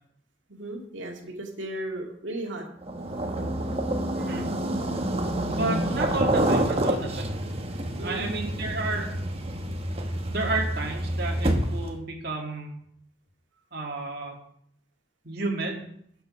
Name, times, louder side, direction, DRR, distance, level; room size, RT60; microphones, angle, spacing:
voice 1, 0.5-2.7 8.0-8.3, right 1 dB, 80° right, 1 dB, 2.2 m, -35 dB
sound 1, 2.8-11.9, right 1 dB, 30° right, 1.3 m, -28 dB
voice 2, 4.1-4.5 5.5-7.4 8.0-9.1 10.3-12.7 13.7-14.4 15.2-15.8, right 2 dB, 55° right, -1 dB, 2.0 m, -31 dB
12.5 x 7.1 x 5.5 m, 0.68 s
head